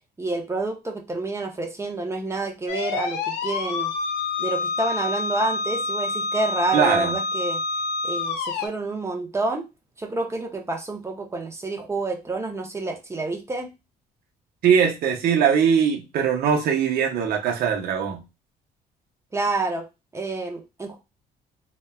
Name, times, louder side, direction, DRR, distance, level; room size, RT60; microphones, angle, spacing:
voice 1, 0.2-3.9 4.4-7.6 8.0-9.6 10.0-13.7 19.3-19.9 20.1-21.0, right 2 dB, 15° right, 3 dB, 0.5 m, -28 dB
sound 1, 2.7-8.7, left 4 dB, 85° left, 0.6 m, -27 dB
voice 2, 6.7-7.2 14.6-18.2, right 7 dB, 65° right, 3 dB, 0.7 m, -21 dB
3.0 x 2.1 x 2.2 m, 0.25 s
cardioid pair, 110°, 17 cm